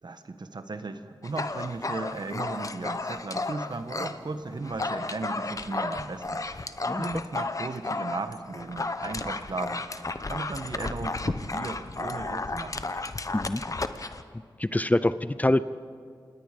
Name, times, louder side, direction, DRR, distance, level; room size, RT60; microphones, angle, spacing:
voice 1, 0.0-6.4 6.9-12.9, right 3 dB, 60° right, 8 dB, 1.4 m, -36 dB
Dog, 1.2-4.2 4.5-14.2, left 3 dB, 40° left, 1.0 m, -33 dB
voice 2, 14.6-15.7, left 1 dB, 20° left, 14 dB, 0.6 m, -25 dB
27.5 x 19.5 x 5.2 m, 2.1 s
wide cardioid pair, 60°, 8 cm